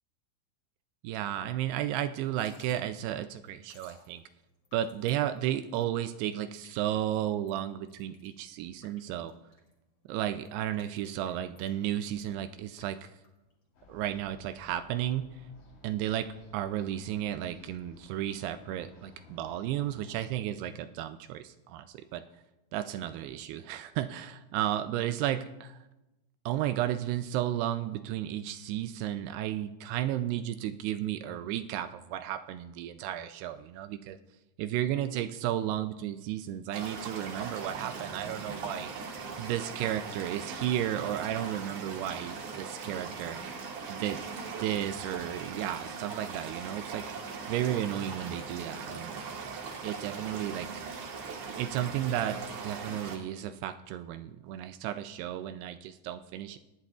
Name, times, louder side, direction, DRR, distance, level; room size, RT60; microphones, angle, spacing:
voice 1, 1.0-4.2 4.7-9.3 10.1-13.1 13.9-15.3 15.8-22.2 22.7-25.8 26.5-34.2 34.6-38.9 39.4-43.4 43.9-44.2 44.6-47.1 47.5-49.5 49.8-50.7 51.6-56.6, right 12 dB, 85° right, 10 dB, 2.3 m, -33 dB
Drip / Trickle dribble, 2.2-13.8, left 3 dB, 35° left, 2.5 m, -61 dB
sound 1, 13.7-20.3, left 2 dB, 75° left, 5.3 m, -56 dB
sound 2, 36.7-53.2, right 4 dB, 60° right, 2.3 m, -40 dB
21.5 x 10.5 x 2.4 m, 1.0 s
omnidirectional pair, 5.1 m